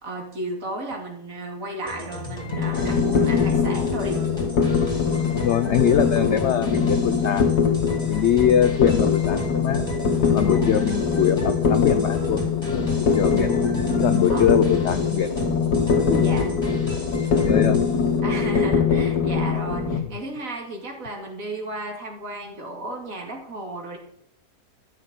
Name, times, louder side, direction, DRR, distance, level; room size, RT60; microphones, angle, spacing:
voice 1, 0.0-4.2 10.4-10.7 14.3-14.4 16.2-16.5 18.2-24.0, right 1 dB, 55° right, 1 dB, 3.0 m, -33 dB
sound 1, 1.9-18.2, equal, 15° left, 3.4 m, -35 dB
sound 2, 2.5-20.0, left 6 dB, 75° left, 2.0 m, -22 dB
voice 2, 5.3-7.7 8.1-9.9 10.3-13.7 14.0-15.3 15.9-16.6 17.4-17.8, left 9 dB, 60° left, 10 dB, 0.8 m, -23 dB
13.0 x 6.7 x 8.1 m, 0.72 s
omnidirectional pair, 1.7 m